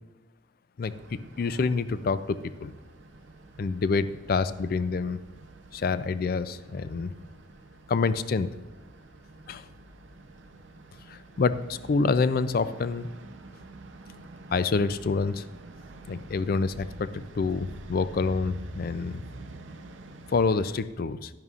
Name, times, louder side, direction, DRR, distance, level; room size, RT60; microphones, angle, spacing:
voice 1, 0.8-2.7 3.6-5.2 5.7-7.1 7.9-8.5 9.5-9.6 11.1-13.1 14.5-15.5 16.1-19.2 20.3-21.3, left 4 dB, 50° left, 14 dB, 0.4 m, -27 dB
sound 1, 0.8-20.8, right 2 dB, 80° right, 0.6 m, -47 dB
11.0 x 10.5 x 2.4 m, 1.2 s
head